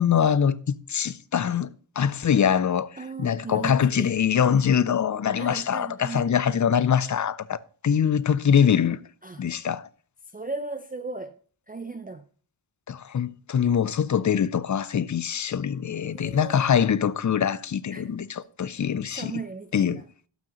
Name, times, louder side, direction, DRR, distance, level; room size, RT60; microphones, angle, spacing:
voice 1, 0.0-2.9 3.2-7.6 7.8-9.0 9.4-9.9 12.9-19.4 19.7-20.0, left 8 dB, 40° left, 0.4 m, -23 dB
voice 2, 3.0-4.1 4.5-4.6 5.3-6.3 9.2-9.4 10.3-11.4 11.7-12.2 16.0-16.8 17.9-18.1 19.2-20.0, right 3 dB, 20° right, 0.4 m, -37 dB
12.0 x 6.1 x 3.0 m
wide cardioid pair, 85°, 48 cm